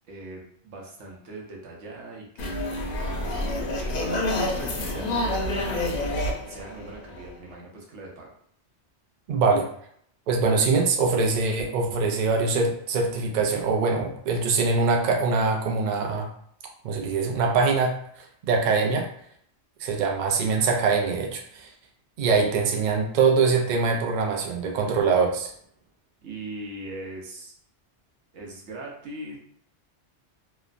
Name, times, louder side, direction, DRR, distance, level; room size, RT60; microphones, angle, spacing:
voice 1, 0.1-3.6 4.3-6.1 6.4-8.3 26.2-27.5 28.3-29.4, right 2 dB, 85° right, -1 dB, 1.0 m, -40 dB
sound 1, 2.4-7.5, left 1 dB, 60° left, 0.6 m, -28 dB
voice 2, 9.3-9.7 10.3-16.3 16.8-19.1 19.8-21.7 22.2-25.5, right 4 dB, 60° right, 2 dB, 0.5 m, -23 dB
2.9 x 2.0 x 2.4 m, 0.65 s
omnidirectional pair, 1.2 m